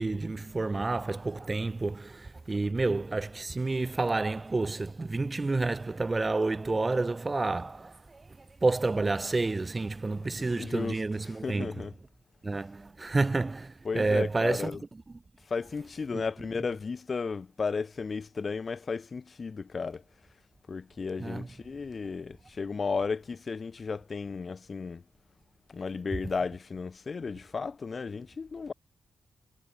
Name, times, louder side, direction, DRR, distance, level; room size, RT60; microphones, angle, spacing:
voice 1, 0.0-11.8 12.4-14.7 16.1-16.2 21.2-21.5, right 3 dB, 20° right, 1.9 m, -29 dB
voice 2, 10.6-11.0 11.4-11.9 13.9-14.8 15.5-20.0 20.7-25.0 25.7-28.7, left 4 dB, 35° left, 3.6 m, -34 dB
wide cardioid pair, 130°, 0 cm